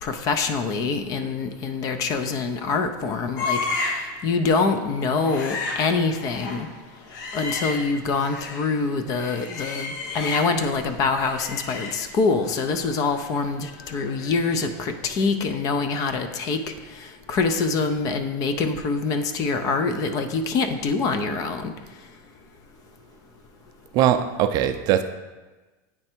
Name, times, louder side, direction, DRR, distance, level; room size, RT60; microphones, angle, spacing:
voice 1, 0.0-6.7 7.3-16.6 16.9-21.7, left 4 dB, 35° left, 8 dB, 0.5 m, -25 dB
sound 1, 3.4-4.2 4.4-4.7 5.0-8.7 9.1-10.7 11.0-14.8 15.1-15.2, left 3 dB, 75° left, 1.0 m, -33 dB
voice 2, 23.9-25.0, right 10 dB, 40° right, 9 dB, 0.4 m, -20 dB
8.4 x 3.3 x 4.4 m, 1.2 s
supercardioid pair, 155°, 10 cm